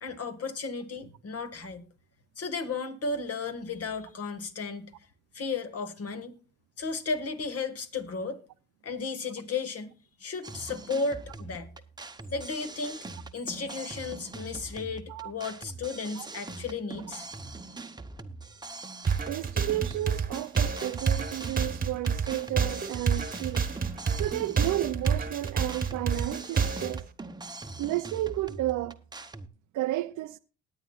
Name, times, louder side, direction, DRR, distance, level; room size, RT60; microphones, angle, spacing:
voice 1, 0.0-1.8 2.4-4.9 5.3-6.3 6.8-8.4 8.8-9.9 10.2-11.7 12.3-13.1 13.3-17.3, left 4 dB, 50° left, 1.8 m, -34 dB
sound 1, 10.4-29.5, right 3 dB, 15° right, 0.9 m, -43 dB
Chirp tweet, 12.1-15.1, left 3 dB, 80° left, 5.2 m, -56 dB
sound 2, 19.1-27.0, right 6 dB, 30° right, 1.2 m, -28 dB
voice 2, 19.3-23.6 24.1-27.0 27.8-29.0 29.7-30.4, right 16 dB, 80° right, 0.5 m, -32 dB
19.5 x 9.2 x 2.4 m
cardioid pair, 90°, 30 cm